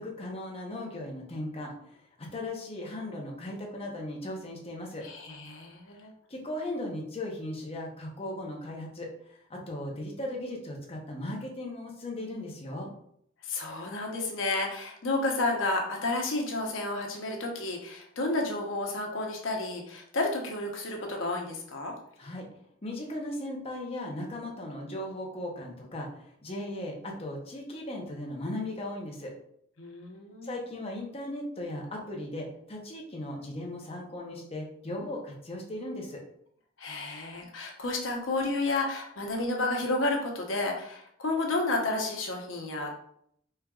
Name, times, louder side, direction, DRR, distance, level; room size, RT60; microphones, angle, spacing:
voice 1, 0.0-5.1 6.3-12.9 22.2-22.5 22.8-29.3 30.4-36.2, left 1 dB, 30° left, 0 dB, 0.8 m, -37 dB
voice 2, 5.0-6.1 13.4-21.9 29.8-30.6 36.8-42.9, left 2 dB, 80° left, 0 dB, 0.9 m, -31 dB
4.4 x 3.5 x 2.4 m, 0.69 s
head